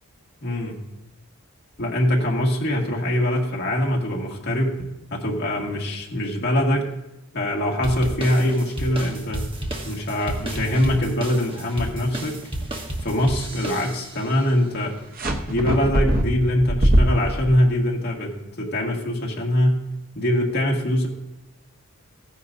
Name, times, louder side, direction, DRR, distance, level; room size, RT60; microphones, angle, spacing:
voice 1, 0.4-0.8 1.8-4.8 5.1-6.9 7.3-9.4 9.8-12.4 13.0-15.0 15.5-19.8 20.1-21.1, left 1 dB, 50° left, -2 dB, 1.9 m, -23 dB
sound 1, 7.8-14.3, right 1 dB, 25° right, 1.2 m, -32 dB
sound 2, 15.2-17.5, right 1 dB, 40° right, 0.9 m, -21 dB
15.0 x 10.0 x 2.7 m, 0.93 s
head